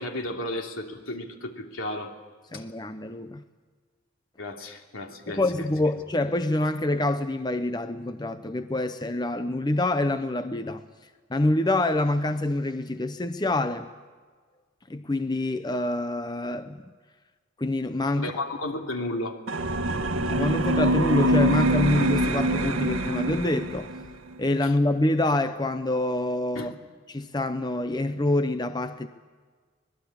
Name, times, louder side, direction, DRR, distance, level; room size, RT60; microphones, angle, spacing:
voice 1, 0.0-2.1 2.5-2.6 4.4-5.4 18.1-19.4 24.6-24.7 26.5-26.7, left 1 dB, 80° left, 2.9 m, -33 dB
voice 2, 2.5-3.4 5.4-10.8 11.3-13.9 14.9-16.8 17.6-18.3 20.3-23.9 24.4-26.7 27.1-29.1, left 1 dB, 20° left, 0.7 m, -26 dB
sound 1, 19.5-24.1, right 1 dB, 80° right, 1.5 m, -24 dB
25.0 x 20.0 x 8.6 m
head